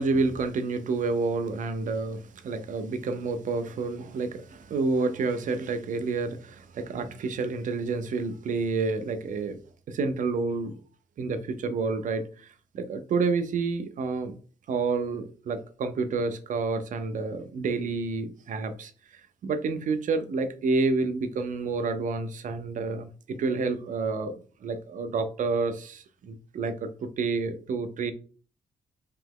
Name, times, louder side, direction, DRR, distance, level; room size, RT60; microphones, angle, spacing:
voice 1, 0.0-9.6 9.9-10.7 11.2-14.3 14.7-18.9 19.4-24.3 24.6-28.1, right 4 dB, 70° right, 0.6 m, -29 dB
3.3 x 2.9 x 3.7 m
cardioid pair, 100°, 14 cm